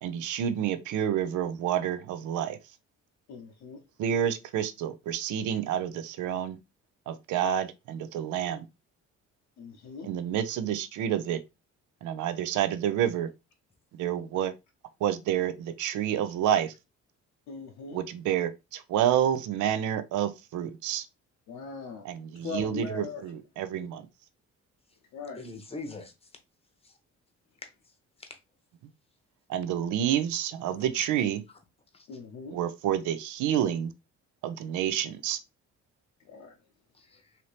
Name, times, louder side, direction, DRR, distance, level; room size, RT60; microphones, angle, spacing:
voice 1, 0.0-2.6 4.0-6.6 7.1-8.6 10.0-11.4 12.0-13.3 14.0-14.5 15.0-16.7 17.9-21.1 22.0-24.0 29.5-31.4 32.5-33.9 34.4-35.4, right 10 dB, 80° right, 0.5 m, -29 dB
voice 2, 3.3-3.8 9.6-10.1 17.5-18.0 21.5-22.1 22.4-23.2 25.1-25.4 32.1-32.6 36.3-36.5, left 5 dB, 80° left, 0.7 m, -39 dB
voice 3, 25.3-26.3 26.8-27.0 27.6-27.7 28.2-28.4 30.7-31.1 31.9-32.2 36.9-37.4, left 3 dB, 20° left, 0.8 m, -43 dB
2.8 x 2.6 x 3.1 m
cardioid pair, 90°, 30 cm